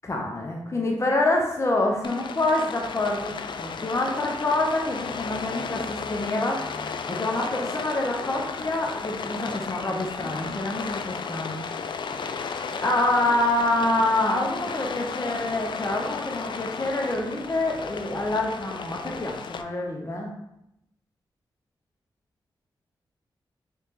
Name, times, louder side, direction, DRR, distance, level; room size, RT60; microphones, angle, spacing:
voice 1, 0.0-6.6 7.0-11.6 12.8-20.3, left 2 dB, 30° left, -1 dB, 0.8 m, -26 dB
Rain, 2.0-19.6, left 5 dB, 60° left, 0.3 m, -34 dB
3.4 x 3.2 x 2.9 m, 0.82 s
supercardioid pair, 45°, 9 cm